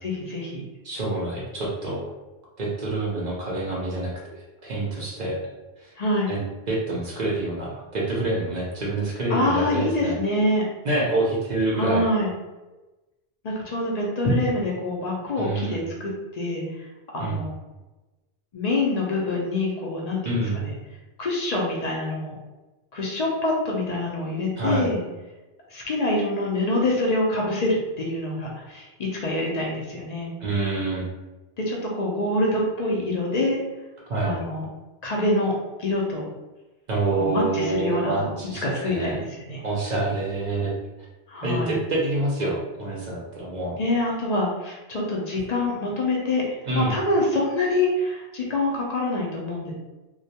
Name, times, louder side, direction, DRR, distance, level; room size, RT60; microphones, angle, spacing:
voice 1, 0.0-0.6 6.0-6.3 9.3-10.6 11.7-12.3 13.4-16.6 17.1-17.5 18.5-20.7 21.2-22.3 22.9-25.0 25.7-30.3 31.7-33.6 34.2-34.6 35.0-35.5 35.8-36.3 37.2-38.3 38.6-39.6 41.3-41.8 43.8-46.4 46.7-49.7, left 2 dB, 55° left, -3 dB, 0.5 m, -25 dB
voice 2, 0.8-2.0 2.6-5.4 5.8-5.9 6.3-10.2 10.8-12.0 15.4-15.8 17.2-17.4 20.2-20.6 24.6-24.9 30.4-31.1 34.1-34.4 36.9-39.2 39.6-40.7 41.4-43.8 46.7-47.0, right 2 dB, 55° right, -4 dB, 0.5 m, -27 dB
2.2 x 2.1 x 2.7 m, 1.1 s
omnidirectional pair, 1.1 m